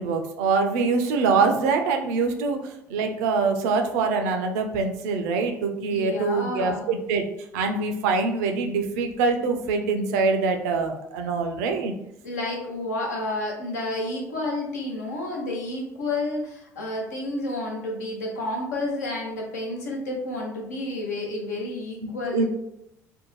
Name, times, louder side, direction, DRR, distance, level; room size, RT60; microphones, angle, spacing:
voice 1, 0.0-7.2 7.5-11.9 22.0-22.4, right 4 dB, 70° right, 5 dB, 0.4 m, -24 dB
voice 2, 5.9-6.9 12.2-22.4, left 2 dB, 80° left, -1 dB, 0.6 m, -30 dB
2.5 x 2.1 x 3.0 m, 0.81 s
figure-of-eight pair, 55°, 9 cm